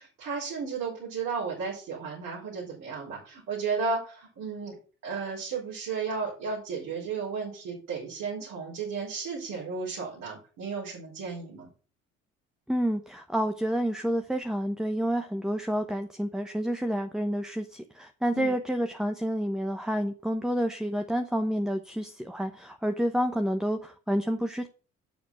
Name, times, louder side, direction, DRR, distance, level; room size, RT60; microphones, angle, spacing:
voice 1, 0.0-4.8 5.0-11.7 18.3-18.5, right 5 dB, 60° right, -5 dB, 4.4 m, -34 dB
voice 2, 12.7-24.7, equal, ahead, 7 dB, 0.9 m, -29 dB
7.1 x 6.8 x 6.1 m, 0.38 s
hypercardioid pair, 55°, 37 cm